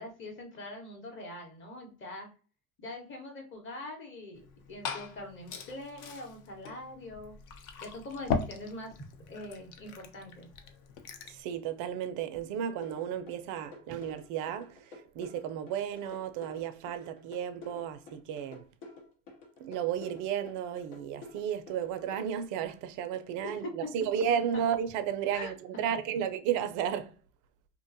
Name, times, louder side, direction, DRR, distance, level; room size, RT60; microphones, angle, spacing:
voice 1, 0.0-2.3 2.8-4.4 4.7-7.3 7.8-9.0 9.3-10.5 23.4-23.7 25.3-25.5, left 1 dB, 25° left, 1.0 m, -43 dB
Glass / Fill (with liquid), 4.3-11.4, left 5 dB, 45° left, 0.5 m, -39 dB
voice 2, 11.3-18.7 19.6-27.2, right 9 dB, 45° right, 0.4 m, -33 dB
sound 1, 12.8-22.2, left 2 dB, 70° left, 1.0 m, -49 dB
2.5 x 2.2 x 2.5 m
hypercardioid pair, 95°, 45 cm